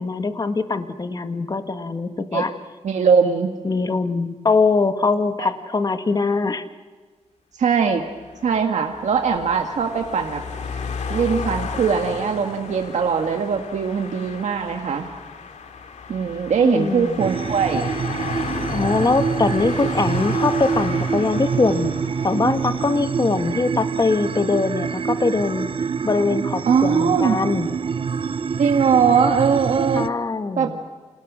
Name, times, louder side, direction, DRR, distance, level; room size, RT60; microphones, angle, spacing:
voice 1, 0.0-2.5 3.6-6.6 16.6-17.2 18.7-22.0 22.2-25.7 26.0-27.7 29.9-30.8, left 3 dB, 35° left, 8 dB, 1.7 m, -22 dB
voice 2, 2.8-3.5 5.4-5.5 7.5-8.0 8.4-10.4 10.7-10.8 11.1-15.1 16.1-17.9 26.7-27.4 28.6-30.1 30.6-30.7, right 6 dB, 85° right, 4 dB, 1.8 m, -20 dB
sound 1, 8.1-23.5, left 5 dB, 85° left, 2.5 m, -34 dB
sound 2, 17.2-30.1, right 6 dB, 50° right, 0.7 m, -26 dB
30.0 x 27.0 x 6.3 m, 1.4 s
wide cardioid pair, 105°, 12 cm